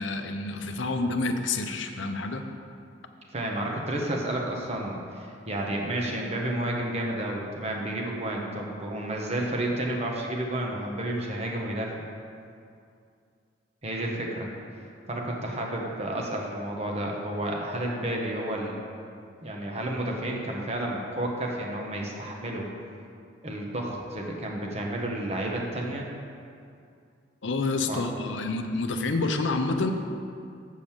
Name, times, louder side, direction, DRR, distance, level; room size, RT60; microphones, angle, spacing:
voice 1, 0.0-2.4 27.4-29.9, left 3 dB, 75° left, 6 dB, 0.7 m, -28 dB
voice 2, 3.3-11.9 13.8-14.5 15.1-18.8 19.4-22.7 23.4-26.1 27.9-28.0, right 1 dB, 35° right, -1 dB, 1.1 m, -31 dB
7.4 x 5.2 x 7.2 m, 2.4 s
head